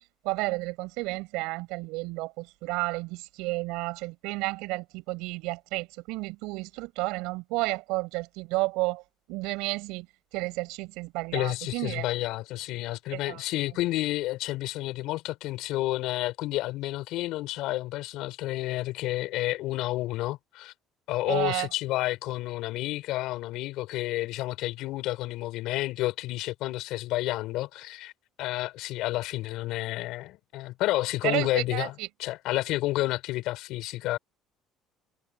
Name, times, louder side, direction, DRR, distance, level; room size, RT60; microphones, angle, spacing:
voice 1, 0.0-9.0 9.3-10.1 10.3-12.1 13.1-13.4 21.3-21.7 31.2-32.1, right 23 dB, 90° right, 7.7 m, -31 dB
voice 2, 11.3-20.7 21.1-28.1 28.4-31.9 32.2-34.2, left 17 dB, 75° left, 6.8 m, -30 dB
cardioid pair, 130°, 0 cm